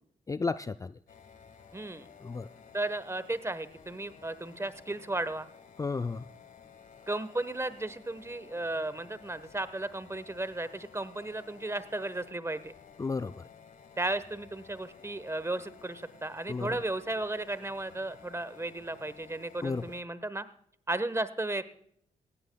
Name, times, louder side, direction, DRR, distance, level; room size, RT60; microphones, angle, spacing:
voice 1, 0.3-0.9 2.2-2.5 5.8-6.2 13.0-13.4 16.5-16.8 19.6-19.8, left 4 dB, 20° left, 12 dB, 0.4 m, -33 dB
sound 1, 1.1-20.0, left 6 dB, 60° left, 1.4 m, -54 dB
voice 2, 1.7-2.1 2.7-5.5 7.1-12.7 14.0-20.4 20.9-21.6, right 2 dB, 20° right, 15 dB, 1.1 m, -34 dB
19.0 x 15.5 x 2.3 m, 0.67 s
supercardioid pair, 45°, 15 cm